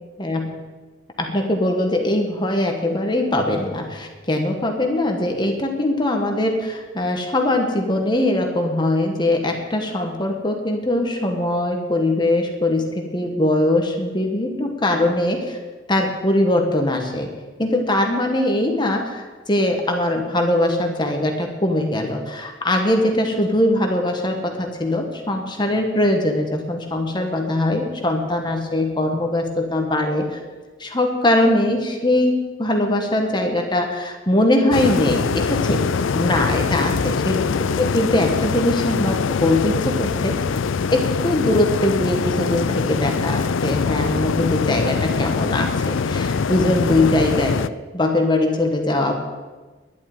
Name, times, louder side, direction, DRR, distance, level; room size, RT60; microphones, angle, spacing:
voice 1, 0.2-0.5 1.2-15.6 15.9-17.3 17.6-30.4 30.8-35.9 36.1-37.4 37.8-40.4 40.9-47.6 47.9-49.1, left 1 dB, 25° left, 3 dB, 1.4 m, -21 dB
sound 1, 34.7-47.7, left 5 dB, 85° left, 0.5 m, -23 dB
11.5 x 8.4 x 9.4 m, 1.3 s
head